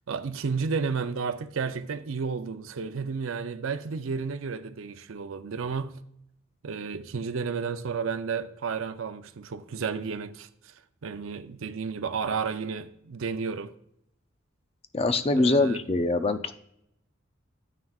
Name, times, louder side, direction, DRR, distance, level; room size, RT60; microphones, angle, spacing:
voice 1, 0.1-6.0 6.6-10.5 11.0-13.7 15.3-15.8, right 5 dB, 75° right, 0.5 m, -32 dB
voice 2, 14.9-16.5, left 2 dB, 30° left, 0.4 m, -23 dB
9.3 x 9.2 x 2.4 m
head